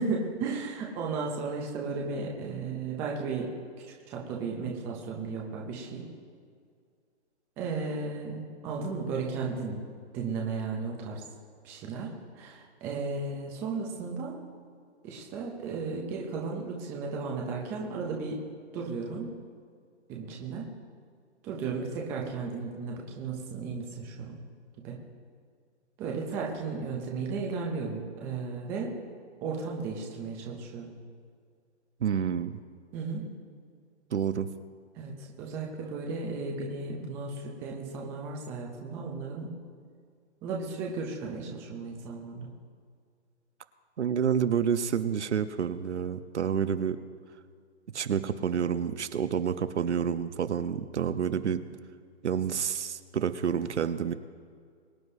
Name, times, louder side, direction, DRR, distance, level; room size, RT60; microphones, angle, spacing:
voice 1, 0.0-3.5 4.1-6.1 7.6-9.8 10.1-11.2 11.6-12.1 12.4-14.4 15.0-18.4 18.7-19.3 20.1-20.7 21.4-24.4 24.8-25.0 26.0-28.9 29.4-30.9 32.9-33.3 35.0-39.6 40.4-42.5, right 4 dB, 5° right, -1 dB, 0.5 m, -34 dB
voice 2, 32.0-32.6 34.1-34.5 44.0-47.0 47.9-51.6 52.2-54.1, right 7 dB, 75° right, 11 dB, 0.9 m, -29 dB
23.0 x 9.3 x 2.7 m, 2.1 s
hypercardioid pair, 155°, 35 cm